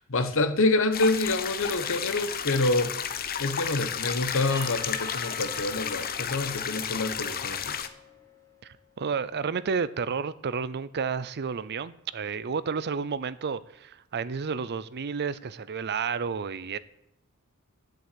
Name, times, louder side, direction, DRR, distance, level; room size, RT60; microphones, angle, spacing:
voice 1, 0.0-2.9 3.4-7.8, left 2 dB, 65° left, 1.2 m, -27 dB
sound 1, 0.9-7.9, left 8 dB, 45° left, 0.8 m, -32 dB
Percussion / Church bell, 4.5-8.6, left 3 dB, 15° left, 3.3 m, -44 dB
voice 2, 8.6-16.8, right 5 dB, 50° right, 0.5 m, -31 dB
10.5 x 8.0 x 8.5 m
head